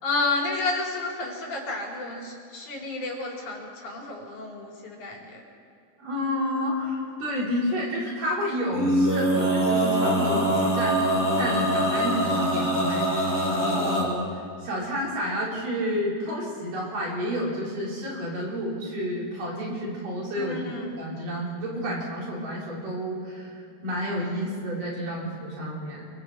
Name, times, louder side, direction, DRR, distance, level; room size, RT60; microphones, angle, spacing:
voice 1, 0.0-5.4 20.4-20.9, left 3 dB, 65° left, -2 dB, 4.9 m, -31 dB
voice 2, 6.0-20.6 21.0-26.0, equal, 80° right, -5 dB, 6.4 m, -30 dB
Male singing, 8.7-14.0, right 1 dB, 5° left, 5.2 m, -23 dB
30.0 x 21.5 x 4.5 m, 2.5 s
omnidirectional pair, 3.7 m